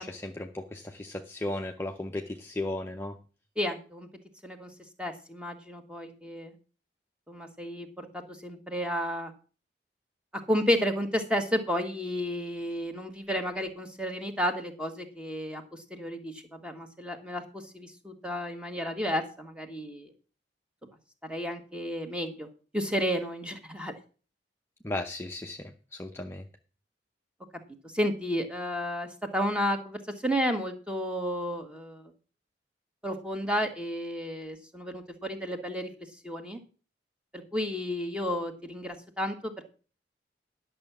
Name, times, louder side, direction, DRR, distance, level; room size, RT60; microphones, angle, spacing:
voice 1, 0.0-3.2 24.8-26.4, left 2 dB, 15° left, 3 dB, 0.8 m, -35 dB
voice 2, 3.6-4.1 4.4-4.7 5.0-6.5 7.3-9.3 10.5-15.6 15.9-20.1 21.2-22.5 22.7-23.9 27.9-32.0 33.0-35.9 36.2-36.6 37.3-39.6, equal, 5° right, 5 dB, 1.7 m, -32 dB
11.0 x 6.8 x 6.1 m, 0.37 s
head